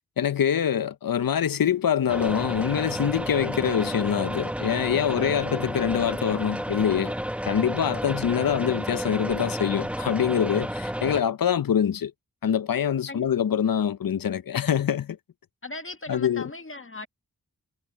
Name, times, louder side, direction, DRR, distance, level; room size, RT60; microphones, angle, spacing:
voice 1, 0.2-7.1 7.4-12.1 12.4-15.2 16.1-16.5, left 8 dB, 75° left, 0.7 m, -25 dB
sound 1, 2.1-11.2, equal, 5° right, 1.0 m, -31 dB
voice 2, 15.6-17.1, left 3 dB, 35° left, 1.5 m, -38 dB
cardioid pair, 45°, 35 cm